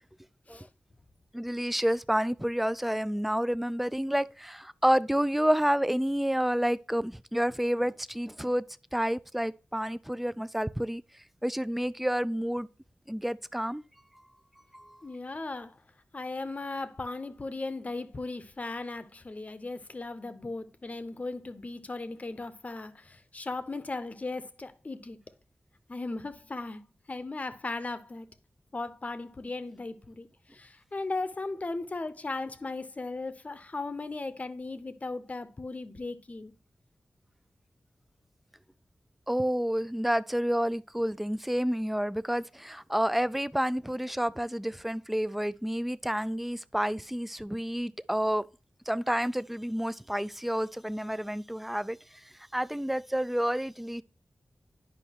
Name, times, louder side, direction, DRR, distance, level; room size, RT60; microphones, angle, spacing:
voice 1, 1.3-8.6 8.9-11.0 11.4-12.7 13.1-13.8 14.7-15.0 39.3-48.5 48.9-52.0 52.5-54.0, equal, 5° right, 0.3 m, -29 dB
voice 2, 15.0-15.8 16.1-25.2 25.9-28.3 28.7-36.5, left 3 dB, 40° left, 0.7 m, -37 dB
9.9 x 5.3 x 2.8 m
wide cardioid pair, 70°, 4 cm